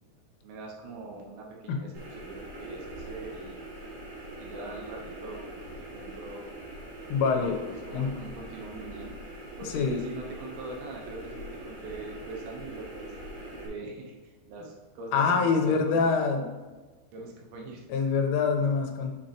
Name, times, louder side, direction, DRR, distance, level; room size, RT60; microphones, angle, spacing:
voice 1, 0.4-3.7 4.4-5.5 5.8-6.5 7.4-9.1 9.6-13.1 13.6-16.2 17.1-17.8, right 3 dB, 75° right, 0 dB, 3.0 m, -42 dB
sound 1, 1.9-13.7, right 1 dB, 50° right, 3.2 m, -42 dB
voice 2, 7.1-7.6 7.9-8.1 9.6-10.0 15.1-16.5 17.9-19.2, left 5 dB, 90° left, 3 dB, 3.3 m, -25 dB
7.4 x 6.4 x 2.9 m, 1.3 s
omnidirectional pair, 5.4 m